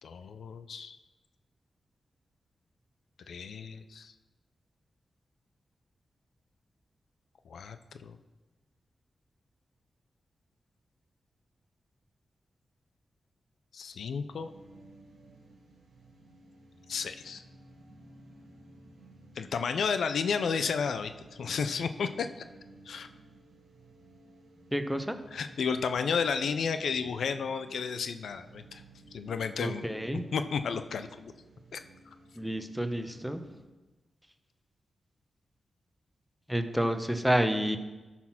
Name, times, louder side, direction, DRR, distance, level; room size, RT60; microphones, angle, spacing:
voice 1, 0.0-1.0 3.3-4.1 7.5-7.8 8.0-8.2 13.7-14.5 16.9-17.4 19.4-22.4 22.9-23.1 25.3-28.8 29.1-29.9 30.3-31.3 31.7-31.8, left 6 dB, 80° left, 10 dB, 0.5 m, -32 dB
sound 1, 14.3-33.6, right 2 dB, 90° right, 2.1 m, -55 dB
voice 2, 24.7-25.2 29.6-30.2 32.4-33.4 36.5-37.8, equal, 5° right, 8 dB, 1.0 m, -29 dB
13.0 x 4.3 x 5.7 m, 1.2 s
cardioid pair, 45°, 0 cm